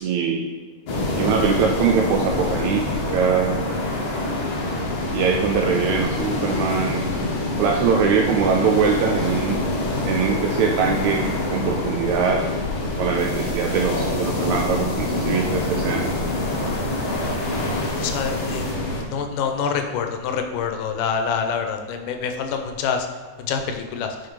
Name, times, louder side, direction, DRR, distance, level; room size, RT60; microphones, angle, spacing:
voice 1, 0.0-0.5 1.2-3.5 5.1-7.1 7.6-9.6 10.0-12.4 13.0-16.1, right 6 dB, 80° right, 2 dB, 1.7 m, -22 dB
sound 1, 0.9-19.0, left 2 dB, 60° left, 1.4 m, -25 dB
sound 2, 13.2-18.7, left 1 dB, 40° left, 0.8 m, -42 dB
voice 2, 17.9-18.7 19.1-23.1 23.4-24.2, left 6 dB, 80° left, 5 dB, 2.3 m, -26 dB
6.6 x 5.1 x 4.7 m, 1.5 s
omnidirectional pair, 3.8 m